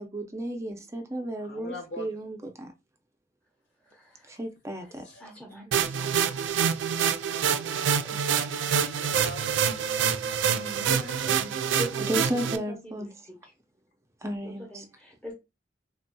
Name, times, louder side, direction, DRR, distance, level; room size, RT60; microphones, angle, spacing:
voice 1, 0.0-2.7 4.3-5.0 8.0-8.5 12.1-13.1 14.2-14.6, right 1 dB, 15° right, 0.4 m, -34 dB
voice 2, 1.4-2.4 4.1-4.2 4.9-5.3 8.2-10.1, left 1 dB, 75° left, 1.3 m, -44 dB
voice 3, 3.8-4.3 4.8-4.9 5.2-6.9 10.5-13.5 14.4-15.3, equal, 5° left, 1.0 m, -43 dB
sound 1, 5.7-12.6, right 7 dB, 80° right, 0.3 m, -26 dB
3.3 x 2.7 x 2.2 m
head